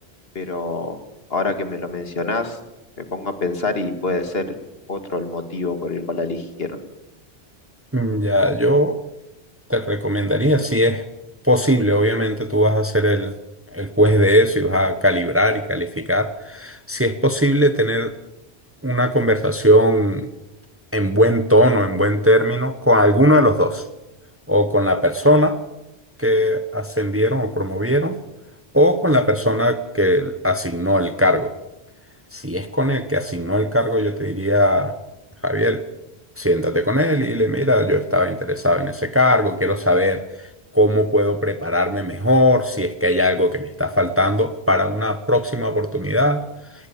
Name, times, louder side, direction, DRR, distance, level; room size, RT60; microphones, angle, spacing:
voice 1, 0.4-1.0 1.3-2.6 3.1-4.4 4.9-6.8, left 3 dB, 70° left, 8 dB, 2.2 m, -26 dB
voice 2, 7.9-9.0 9.7-11.0 11.4-13.3 13.7-18.1 18.8-20.3 20.9-23.8 24.5-25.6 26.2-28.2 28.7-31.5 32.3-34.9 35.4-35.8 36.4-40.2 40.7-46.4, equal, 15° right, 11 dB, 1.0 m, -19 dB
19.5 x 19.0 x 7.2 m, 0.96 s
omnidirectional pair, 1.1 m